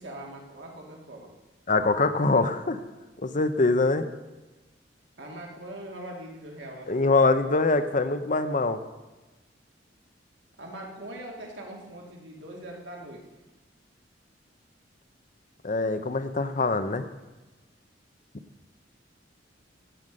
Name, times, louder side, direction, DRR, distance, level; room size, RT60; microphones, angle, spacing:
voice 1, 0.0-1.3 5.2-7.4 10.6-13.2, right 1 dB, 70° right, 0 dB, 2.6 m, -41 dB
voice 2, 1.7-2.8 3.2-4.1 6.9-8.8 15.6-17.0, left 3 dB, 45° left, 10 dB, 0.8 m, -23 dB
16.5 x 8.1 x 5.4 m, 1.1 s
head